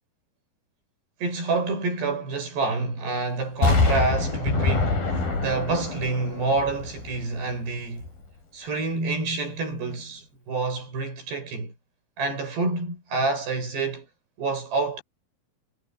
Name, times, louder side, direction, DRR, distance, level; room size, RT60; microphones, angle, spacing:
voice 1, 1.2-8.1 8.5-11.7 12.2-14.1 14.4-15.0, right 3 dB, 85° right, 10.0 m, -28 dB
Explosion, 3.6-7.6 8.0-8.1, left 3 dB, 60° left, 9.7 m, -25 dB
omnidirectional pair, 4.7 m